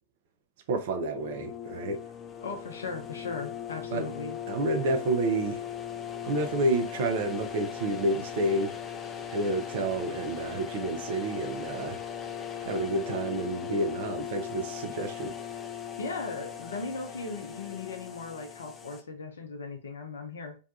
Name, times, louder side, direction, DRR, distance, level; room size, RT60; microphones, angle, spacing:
voice 1, 0.7-2.0 3.9-4.1 4.5-5.6 6.2-8.7 9.3-12.0 12.6-15.4, right 2 dB, 50° right, 0.5 m, -29 dB
sound 1, 1.1-19.0, left 9 dB, 15° left, 0.3 m, -39 dB
voice 2, 2.4-4.4 16.0-20.6, left 4 dB, 65° left, 0.6 m, -38 dB
2.6 x 2.2 x 2.5 m
figure-of-eight pair, 100°, 0 cm